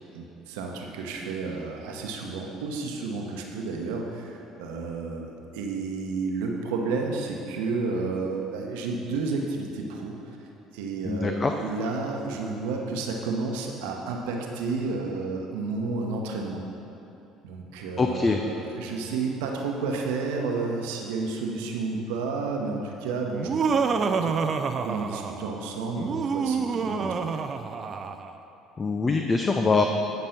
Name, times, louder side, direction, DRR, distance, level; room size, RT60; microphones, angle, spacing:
voice 1, 0.1-10.2 10.7-16.6 17.4-24.3 24.8-27.2, right 4 dB, 75° right, 1 dB, 1.1 m, -31 dB
voice 2, 11.0-11.5 18.0-18.4 28.8-29.8, left 4 dB, 30° left, 4 dB, 0.6 m, -23 dB
Laughter, 23.3-25.5 26.0-28.3, right 5 dB, 40° right, 0.5 m, -27 dB
10.5 x 5.3 x 5.9 m, 2.9 s
hypercardioid pair, 60°, 0 cm